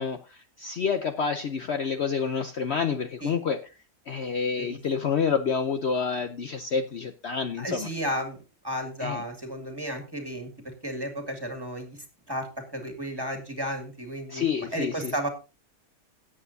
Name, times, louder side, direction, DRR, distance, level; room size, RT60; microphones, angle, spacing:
voice 1, 0.0-3.6 4.1-7.9 9.0-9.2 14.3-15.1, left 6 dB, 55° left, 7 dB, 0.9 m, -28 dB
voice 2, 7.6-12.0 12.3-15.3, equal, 15° right, 5 dB, 2.0 m, -33 dB
17.5 x 8.2 x 2.7 m, 0.29 s
omnidirectional pair, 1.6 m